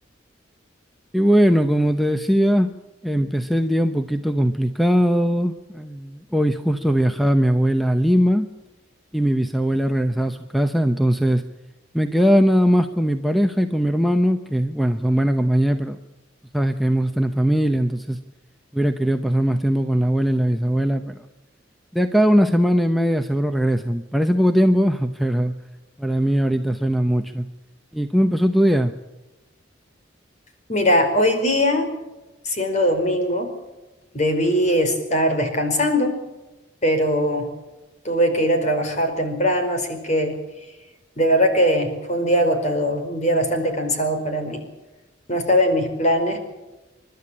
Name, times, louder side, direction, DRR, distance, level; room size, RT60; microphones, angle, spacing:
voice 1, 1.1-2.7 3.0-8.5 9.1-11.4 11.9-16.0 16.5-18.2 18.7-21.1 21.9-25.5 26.0-27.5 27.9-28.9, equal, ahead, 7 dB, 0.8 m, -20 dB
voice 2, 30.7-31.9 32.4-33.5 34.1-36.1 36.8-37.5 38.0-40.4 41.2-44.6 45.3-46.4, equal, 40° left, 5 dB, 4.8 m, -20 dB
30.0 x 12.5 x 8.8 m, 1.1 s
head